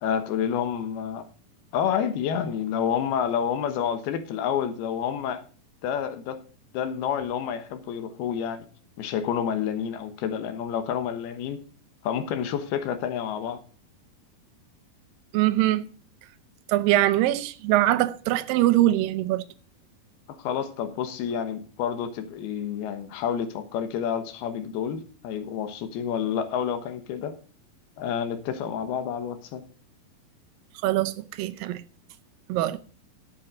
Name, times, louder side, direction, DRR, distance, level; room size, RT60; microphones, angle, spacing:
voice 1, 0.0-1.2 1.7-5.4 5.8-6.4 6.7-8.7 9.0-11.6 12.0-13.6 20.4-27.4 28.0-29.6, left 8 dB, 80° left, 3.1 m, -29 dB
voice 2, 15.3-15.9 16.7-19.4 30.8-31.8 32.5-32.8, right 15 dB, 75° right, 2.2 m, -22 dB
12.0 x 7.9 x 4.8 m
omnidirectional pair, 4.6 m